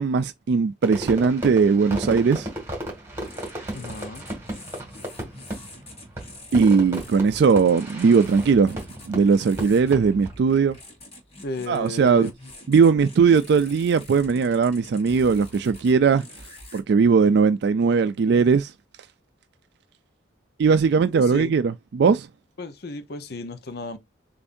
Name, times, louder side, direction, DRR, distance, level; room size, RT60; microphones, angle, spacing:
voice 1, 0.0-2.5 6.5-8.8 9.1-10.8 11.7-12.3 12.7-16.2 16.7-18.7 20.6-22.3, right 5 dB, 60° right, 0.3 m, -19 dB
Fireworks, 0.8-10.4, right 1 dB, 15° right, 2.0 m, -35 dB
sound 1, 3.1-16.8, left 1 dB, 35° left, 1.4 m, -46 dB
voice 2, 3.7-4.3 11.4-12.3 21.1-21.5 22.6-24.0, left 3 dB, 60° left, 0.8 m, -34 dB
6.9 x 2.6 x 2.6 m
head